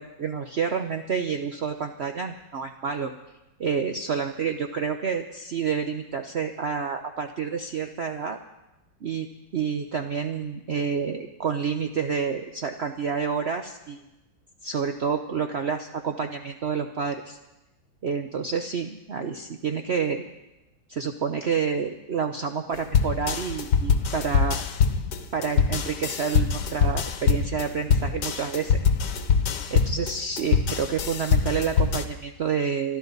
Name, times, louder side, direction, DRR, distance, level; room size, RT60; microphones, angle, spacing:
voice 1, 0.0-3.1 3.6-8.4 9.0-9.3 9.5-14.0 14.6-17.4 18.0-20.2 20.9-24.6 25.3-28.8 29.7-33.0, right 6 dB, 80° right, 5 dB, 0.5 m, -29 dB
sound 1, 22.9-32.0, left 6 dB, 65° left, 1.5 m, -23 dB
24.5 x 12.5 x 4.0 m, 0.97 s
omnidirectional pair, 2.1 m